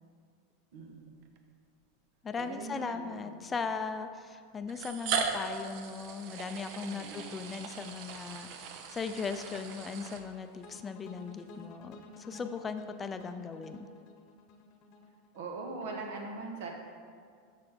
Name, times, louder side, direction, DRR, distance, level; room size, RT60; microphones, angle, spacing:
voice 1, 0.7-1.1 2.4-3.3 6.9-7.2 15.3-16.7, right 3 dB, 75° right, 1 dB, 1.3 m, -41 dB
sound 1, 1.2-1.4 2.4-2.5 3.7-3.8 4.7-10.7, right 6 dB, 55° right, 0.7 m, -38 dB
voice 2, 2.2-13.9, left 5 dB, 20° left, 8 dB, 0.5 m, -38 dB
sound 2, 10.6-15.7, left 3 dB, 50° left, 0.9 m, -52 dB
6.4 x 6.3 x 4.5 m, 2.1 s
hypercardioid pair, 115°, 0 cm